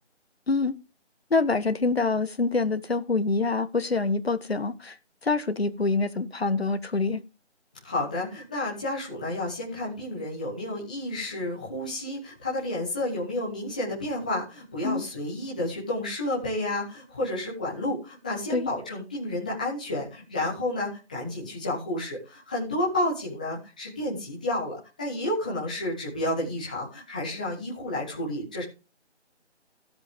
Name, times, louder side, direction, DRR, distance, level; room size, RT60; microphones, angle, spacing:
voice 1, 1.3-5.0 5.2-7.2 14.8-15.1 18.5-18.7, left 3 dB, 60° left, 1.5 m, -25 dB
voice 2, 7.8-28.6, left 1 dB, 5° left, 1.3 m, -31 dB
16.0 x 7.8 x 3.7 m
figure-of-eight pair, 170°, 35 cm